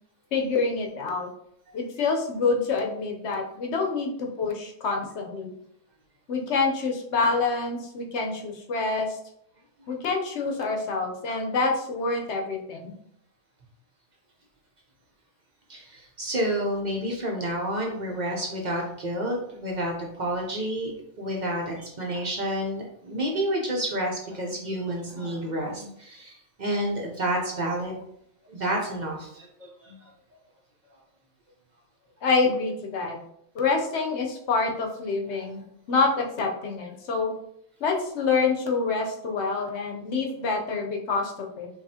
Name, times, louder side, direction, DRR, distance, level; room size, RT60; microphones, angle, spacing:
voice 1, 0.3-1.3 1.7-5.5 6.3-9.2 9.9-12.9 32.2-33.2 33.5-37.3 37.8-41.7, left 4 dB, 75° left, 2 dB, 1.0 m, -27 dB
voice 2, 15.7-20.9 21.2-28.0 28.5-30.0, right 1 dB, 45° right, -1 dB, 0.7 m, -29 dB
5.2 x 2.4 x 2.7 m, 0.72 s
omnidirectional pair, 1.2 m